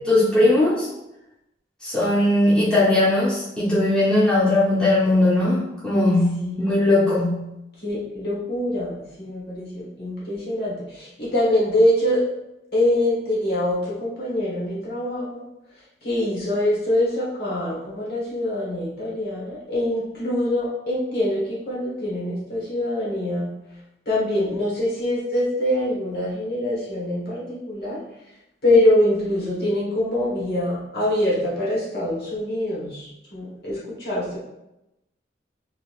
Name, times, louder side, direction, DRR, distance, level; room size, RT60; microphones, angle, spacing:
voice 1, 0.0-0.9 1.8-7.5, left 1 dB, 5° left, -10 dB, 1.1 m, -19 dB
voice 2, 6.4-6.8 7.8-12.2 12.7-15.4 16.0-23.5 24.0-28.0 28.6-34.4, left 1 dB, 60° left, -7 dB, 1.4 m, -24 dB
3.8 x 3.1 x 2.5 m, 0.89 s
head